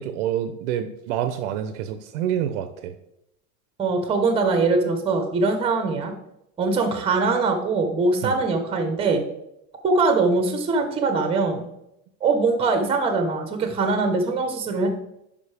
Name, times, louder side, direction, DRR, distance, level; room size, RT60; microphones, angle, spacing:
voice 1, 0.0-3.0 8.2-8.4, right 10 dB, 55° right, 9 dB, 0.6 m, -27 dB
voice 2, 3.8-6.1 6.6-9.2 9.8-11.7 12.2-15.0, right 3 dB, 15° right, 6 dB, 0.8 m, -22 dB
10.0 x 5.2 x 3.3 m, 0.83 s
supercardioid pair, 160°, 44 cm